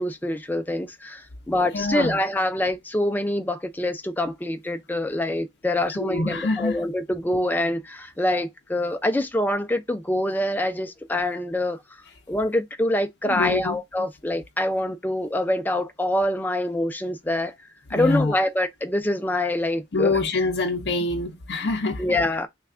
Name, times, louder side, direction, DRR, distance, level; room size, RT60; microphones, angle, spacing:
voice 1, 0.0-11.8 12.3-17.5 17.9-20.2 22.0-22.5, left 1 dB, 10° left, 0.4 m, -25 dB
voice 2, 1.7-2.2 5.9-6.8 13.3-13.8 17.9-18.4 19.9-22.0, left 2 dB, 65° left, 0.6 m, -25 dB
3.2 x 2.3 x 3.5 m
head